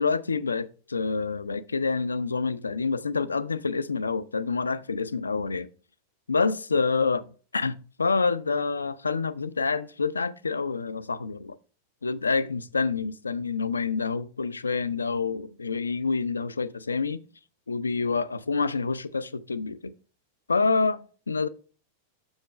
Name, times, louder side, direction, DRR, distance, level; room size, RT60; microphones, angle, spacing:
voice 1, 0.0-5.7 6.3-7.2 7.5-11.6 12.0-17.2 17.7-19.9 20.5-21.5, left 4 dB, 75° left, 0.4 m, -27 dB
7.1 x 6.5 x 3.1 m
figure-of-eight pair, 90°, 0 cm